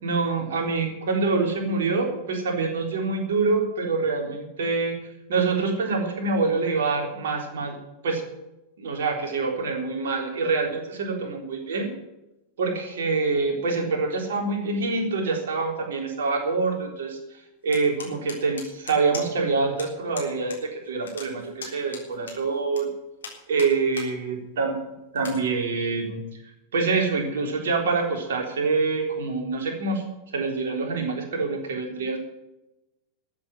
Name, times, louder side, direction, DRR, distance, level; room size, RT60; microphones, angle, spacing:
voice 1, 0.0-5.0 5.3-7.8 8.0-8.2 8.8-11.9 12.6-17.2 17.6-22.9 23.5-24.8 25.1-26.2 26.7-30.0 30.3-32.2, right 4 dB, 60° right, 2 dB, 3.8 m, -26 dB
sound 1, 17.7-19.5 19.8-19.9 20.2-20.6 20.9-22.8 23.2-24.1 24.5-24.6 25.2-25.4, left 5 dB, 70° left, 3.8 m, -39 dB
14.0 x 8.3 x 9.1 m, 0.96 s
figure-of-eight pair, 90°, 0 cm